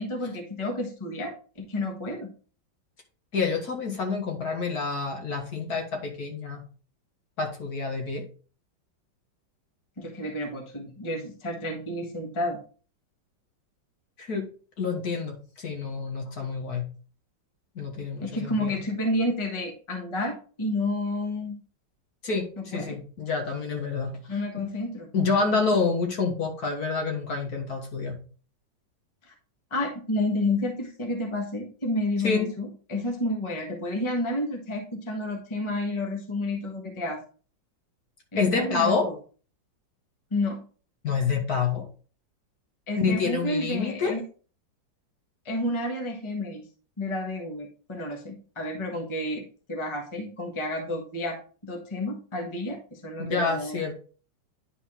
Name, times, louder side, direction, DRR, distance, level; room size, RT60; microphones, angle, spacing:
voice 1, 0.0-2.3 10.0-12.6 18.2-21.6 22.6-23.0 24.3-25.1 29.3-29.4 29.7-37.2 38.3-39.1 40.3-40.6 42.9-44.2 45.4-46.6 47.0-49.4 49.7-51.4 51.6-53.9, left 1 dB, 15° left, 2 dB, 1.3 m, -30 dB
voice 2, 3.3-6.6 7.4-8.2 14.2-14.4 14.8-16.9 17.8-18.8 22.2-24.2 24.6-24.7 25.1-28.2 32.2-32.5 38.4-39.1 41.0-41.9 43.0-44.1 53.2-53.9, left 4 dB, 55° left, 2 dB, 1.9 m, -28 dB
10.0 x 3.9 x 3.7 m, 0.39 s
omnidirectional pair, 2.0 m